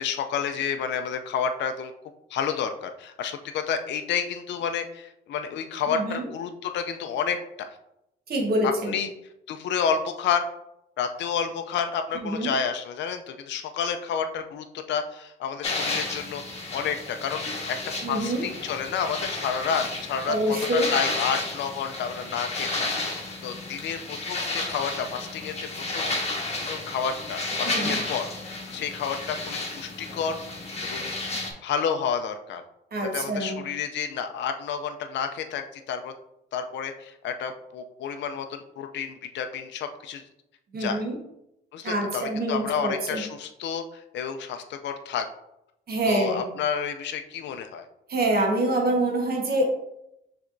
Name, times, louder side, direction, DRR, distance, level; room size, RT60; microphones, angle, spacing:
voice 1, 0.0-1.9 2.3-7.7 8.6-9.1 9.5-10.4 11.0-16.4 16.7-20.4 20.7-22.9 23.4-25.7 25.9-26.1 26.7-31.1 31.6-32.6 33.1-36.1 36.5-40.2 40.8-41.0 41.7-45.3 46.1-47.9, left 7 dB, 65° left, 6 dB, 0.4 m, -30 dB
voice 2, 5.9-6.2 8.3-9.0 12.2-12.5 18.0-18.5 20.3-20.8 27.6-28.0 32.9-33.6 40.7-41.2 41.8-43.2 45.9-46.4 48.1-49.6, right 1 dB, 50° right, 2 dB, 1.3 m, -26 dB
sound 1, 15.6-31.5, left 2 dB, 30° left, 1.3 m, -32 dB
6.1 x 3.4 x 2.5 m, 0.83 s
cardioid pair, 90°, 20 cm